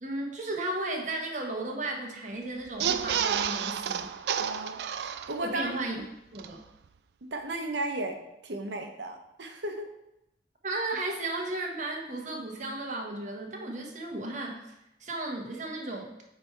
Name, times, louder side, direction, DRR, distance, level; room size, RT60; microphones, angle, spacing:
voice 1, 0.0-4.1 5.4-6.0 6.3-6.6 10.6-14.5 15.0-16.1, right 2 dB, 45° right, 0 dB, 1.2 m, -34 dB
sound 1, 2.7-5.7 6.0-6.1 6.3-6.5, right 8 dB, 70° right, 0.3 m, -30 dB
voice 2, 4.4-5.7 7.2-8.2 8.4-9.9, right 2 dB, 85° right, 5 dB, 0.9 m, -35 dB
8.1 x 3.3 x 4.6 m, 0.86 s
head